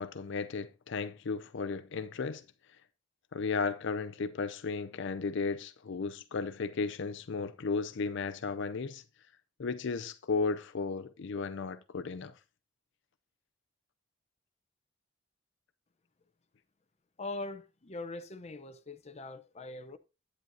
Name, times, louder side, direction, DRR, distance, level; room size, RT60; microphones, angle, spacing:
voice 1, 0.0-2.4 3.3-9.0 9.6-12.3, left 4 dB, 65° left, 0.5 m, -34 dB
voice 2, 17.2-20.0, left 2 dB, 35° left, 0.7 m, -42 dB
11.0 x 9.1 x 2.7 m
head